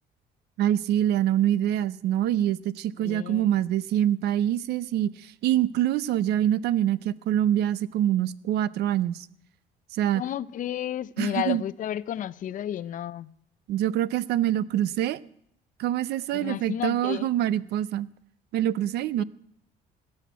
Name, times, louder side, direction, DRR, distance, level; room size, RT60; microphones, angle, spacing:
voice 1, 0.6-9.3 9.9-10.2 11.2-11.6 13.7-15.2 15.8-18.1 18.5-19.2, right 11 dB, 75° right, 0.6 m, -25 dB
voice 2, 3.0-3.5 10.1-13.3 16.3-17.3 19.2-19.3, left 11 dB, 50° left, 0.5 m, -32 dB
17.5 x 6.4 x 9.3 m
cardioid pair, 110°, 17 cm